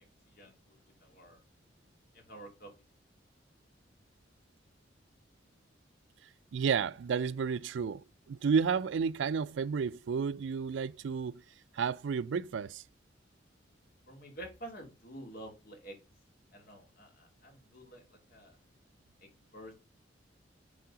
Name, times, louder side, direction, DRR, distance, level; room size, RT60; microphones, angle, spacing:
voice 1, 0.3-1.4 2.1-2.7 14.1-16.0 16.5-18.6 19.2-19.7, right 1 dB, 55° left, 2.4 m, -49 dB
voice 2, 6.5-11.3 11.8-12.8, right 6 dB, 80° right, 0.4 m, -31 dB
7.2 x 3.7 x 5.0 m
head